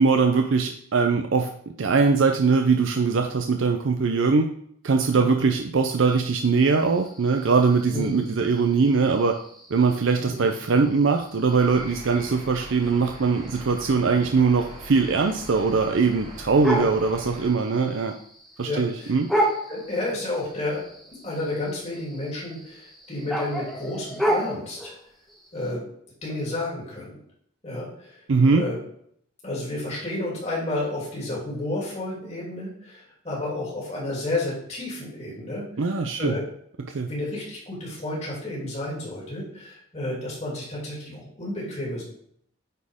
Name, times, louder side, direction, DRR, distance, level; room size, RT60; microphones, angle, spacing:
voice 1, 0.0-1.5 1.8-4.5 4.8-9.4 9.7-18.1 18.6-19.3 28.3-28.6 35.8-36.4 36.9-37.1, right 4 dB, 65° right, 4 dB, 0.5 m, -21 dB
voice 2, 5.1-5.5 7.9-8.2 10.2-10.5 16.7-16.8 18.6-19.4 19.7-20.8 21.1-24.9 25.5-25.8 26.2-27.2 27.6-28.2 28.5-28.8 29.4-35.9 36.2-36.4 37.0-42.0, left 2 dB, 30° left, -5 dB, 2.9 m, -31 dB
sound 1, 6.1-25.7, right 1 dB, ahead, 1.2 m, -34 dB
sound 2, 11.5-17.5, right 1 dB, 30° right, 1.4 m, -41 dB
9.3 x 4.3 x 3.6 m, 0.66 s
head